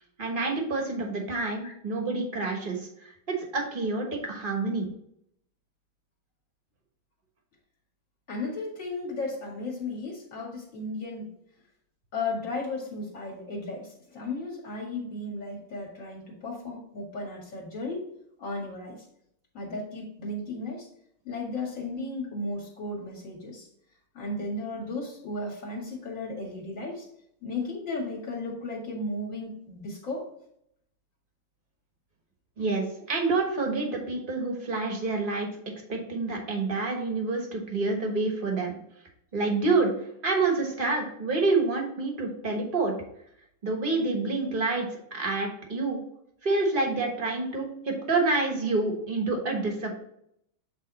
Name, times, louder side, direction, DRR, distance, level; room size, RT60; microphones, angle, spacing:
voice 1, 0.0-4.9 32.6-35.5 35.9-38.8 39.3-39.9 40.2-42.9 43.6-46.0 46.4-50.0, right 3 dB, 30° right, 1 dB, 1.2 m, -28 dB
voice 2, 8.3-11.3 12.1-18.0 18.4-19.1 19.5-20.9 21.2-23.7 24.1-27.1 27.4-30.3, left 2 dB, 40° left, -2 dB, 2.3 m, -35 dB
8.3 x 3.5 x 4.1 m, 0.72 s
omnidirectional pair, 2.2 m